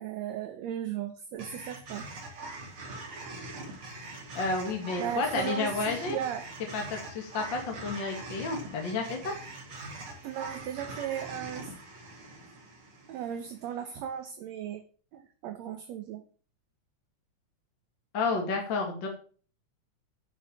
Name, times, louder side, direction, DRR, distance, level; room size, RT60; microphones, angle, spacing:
voice 1, 0.0-2.4 5.0-6.5 10.2-11.7 13.1-14.8 15.1-16.2, right 10 dB, 70° right, 7 dB, 2.1 m, -36 dB
sound 1, 1.4-13.7, right 2 dB, 45° right, 3.6 m, -43 dB
voice 2, 4.3-6.2 6.7-9.3 18.1-19.1, left 3 dB, 40° left, 1 dB, 2.7 m, -31 dB
11.0 x 6.4 x 7.4 m, 0.42 s
omnidirectional pair, 3.4 m